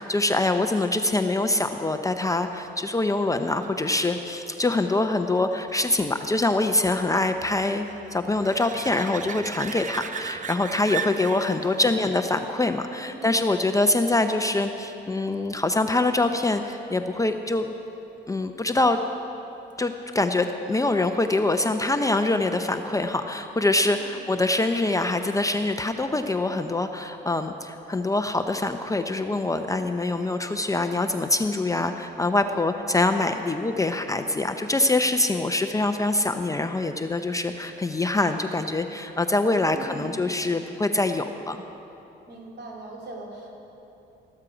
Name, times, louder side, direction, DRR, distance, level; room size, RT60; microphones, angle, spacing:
voice 1, 0.0-17.7 18.3-19.0 19.8-41.6, left 2 dB, 15° left, 7 dB, 0.6 m, -24 dB
sound 1, 2.8-14.1 19.7-19.8, right 6 dB, 40° right, 0.5 m, -39 dB
voice 2, 13.0-13.3 23.9-24.1 39.7-40.2 42.3-43.5, right 2 dB, 60° right, -1 dB, 2.8 m, -41 dB
13.5 x 12.5 x 5.0 m, 3.0 s
cardioid pair, 90°, 20 cm